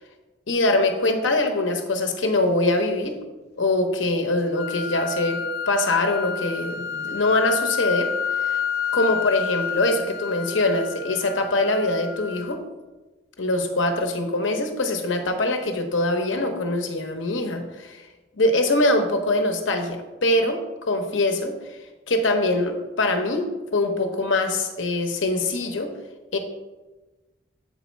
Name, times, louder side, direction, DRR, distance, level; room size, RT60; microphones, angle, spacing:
voice 1, 0.5-3.1 3.6-5.4 5.7-8.1 8.5-8.6 8.9-12.6 13.4-18.0 18.4-21.8 22.1-23.5 23.7-25.9 26.3-26.4, left 2 dB, 80° left, 5 dB, 1.0 m, -23 dB
sound 1, 4.5-12.6, left 7 dB, 55° left, 0.5 m, -29 dB
7.8 x 4.1 x 4.5 m, 1.2 s
head